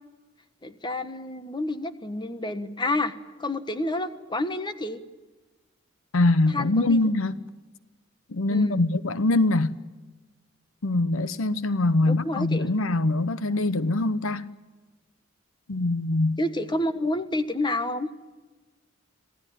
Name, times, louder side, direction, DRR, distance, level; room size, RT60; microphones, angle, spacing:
voice 1, 0.6-3.1 3.4-5.0 6.5-7.1 8.5-8.8 12.0-12.7 16.4-18.1, left 1 dB, 20° left, 1.4 m, -29 dB
voice 2, 6.1-7.3 8.3-9.8 10.8-14.5 15.7-16.4, left 2 dB, 80° left, 0.9 m, -23 dB
26.5 x 17.0 x 9.2 m
head